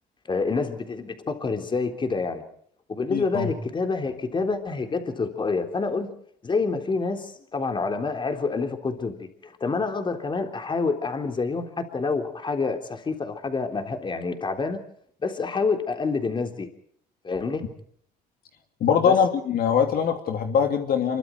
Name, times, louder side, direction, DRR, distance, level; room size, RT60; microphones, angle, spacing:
voice 1, 0.3-2.4 2.9-6.1 6.4-14.8 15.2-16.7 17.2-17.6 19.1-19.2, left 4 dB, 30° left, 6 dB, 3.6 m, -27 dB
voice 2, 3.1-3.5 18.8-21.2, left 7 dB, 60° left, 5 dB, 2.9 m, -22 dB
27.0 x 23.5 x 4.6 m, 0.64 s
cardioid pair, 110°, 17 cm